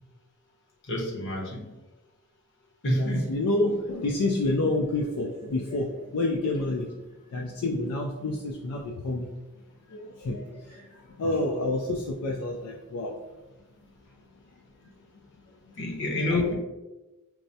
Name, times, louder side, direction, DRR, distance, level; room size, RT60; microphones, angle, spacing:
voice 1, 0.9-1.6 2.8-3.3 15.8-16.5, left 1 dB, 55° left, -1 dB, 0.8 m, -27 dB
voice 2, 3.0-6.9 7.3-9.3 9.9-13.1 16.3-16.5, left 2 dB, 75° left, 0 dB, 0.4 m, -29 dB
4.6 x 2.1 x 2.7 m, 1.1 s
head